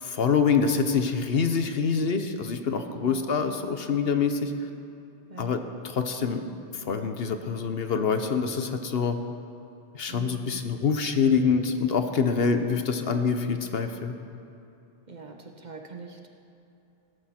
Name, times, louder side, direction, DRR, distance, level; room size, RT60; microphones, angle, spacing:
voice 1, 0.0-4.5 5.4-6.5 6.8-9.2 9.9-14.2, left 5 dB, 60° left, 7 dB, 1.0 m, -25 dB
voice 2, 10.1-10.7 12.5-12.8 13.1-13.3 15.1-16.3, right 4 dB, 40° right, 3 dB, 1.1 m, -43 dB
15.5 x 14.0 x 4.4 m, 2.7 s
omnidirectional pair, 1.2 m